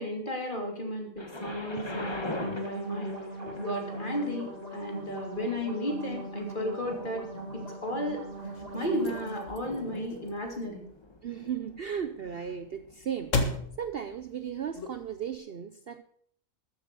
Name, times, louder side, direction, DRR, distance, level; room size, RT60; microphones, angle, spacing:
voice 1, 0.0-7.2 7.5-8.2 8.7-10.9, equal, 35° left, 2 dB, 3.1 m, -34 dB
Thunder, 1.2-13.0 13.8-13.9, left 2 dB, 20° left, 1.3 m, -44 dB
sound 1, 1.5-9.5, right 2 dB, 25° right, 3.2 m, -40 dB
sound 2, 8.3-15.4, left 2 dB, 65° left, 1.9 m, -38 dB
voice 2, 11.2-16.0, right 8 dB, 55° right, 10 dB, 0.8 m, -36 dB
14.0 x 7.8 x 6.8 m, 0.63 s
omnidirectional pair, 1.4 m